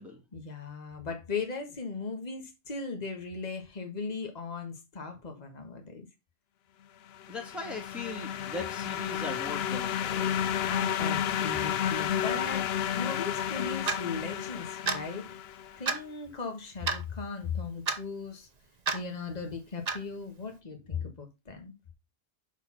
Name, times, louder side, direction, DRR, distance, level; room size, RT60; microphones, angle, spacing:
voice 1, 0.3-6.1 10.2-15.3 15.8-18.5 18.9-21.7, left 4 dB, 40° left, 1.6 m, -38 dB
sound 1, 7.1-15.8, left 9 dB, 80° left, 0.9 m, -31 dB
voice 2, 7.3-10.3, left 2 dB, ahead, 1.7 m, -39 dB
Clock, 13.9-14.0 14.9-15.0 15.9-16.0 16.9-17.0 17.9-18.0 18.9-19.0 19.9-20.0, right 4 dB, 45° right, 0.9 m, -29 dB
6.9 x 4.3 x 5.6 m
omnidirectional pair, 1.0 m